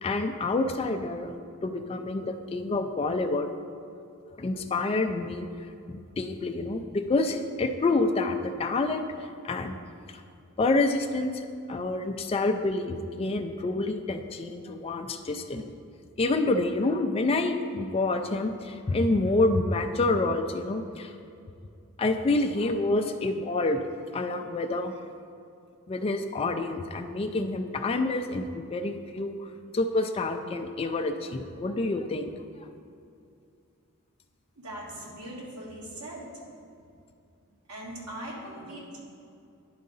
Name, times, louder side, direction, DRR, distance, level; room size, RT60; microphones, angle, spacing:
voice 1, 0.0-1.3 1.6-3.5 4.4-5.5 5.9-9.1 9.4-9.8 10.6-11.4 11.7-15.7 16.2-21.1 22.0-23.8 24.1-24.9 25.9-29.4 29.7-32.3, left 2 dB, 25° left, 5 dB, 0.3 m, -27 dB
voice 2, 34.5-36.3 37.7-39.0, right 1 dB, 85° right, -4 dB, 1.6 m, -40 dB
10.5 x 3.8 x 3.9 m, 2.5 s
head